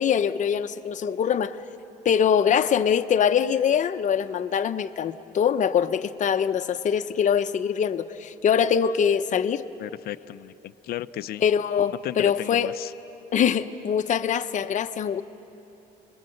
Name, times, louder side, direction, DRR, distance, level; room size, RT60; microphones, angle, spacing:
voice 1, 0.0-1.6 2.0-9.6 11.4-12.7 13.3-15.2, left 8 dB, 45° left, 9 dB, 0.9 m, -23 dB
voice 2, 9.8-11.4 12.0-12.9, left 13 dB, 65° left, 11 dB, 0.6 m, -34 dB
29.0 x 22.0 x 7.9 m, 2.9 s
cardioid pair, 110°, 17 cm